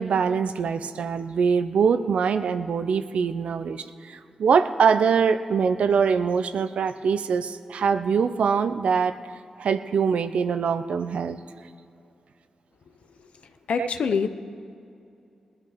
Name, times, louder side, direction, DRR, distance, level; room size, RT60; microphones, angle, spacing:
voice 1, 0.0-9.2 9.6-11.4 13.8-13.9, right 6 dB, 80° right, 10 dB, 0.5 m, -23 dB
voice 2, 13.7-14.3, left 6 dB, 80° left, 10 dB, 0.7 m, -24 dB
19.5 x 9.6 x 5.0 m, 2.5 s
cardioid pair, 50°, 2 cm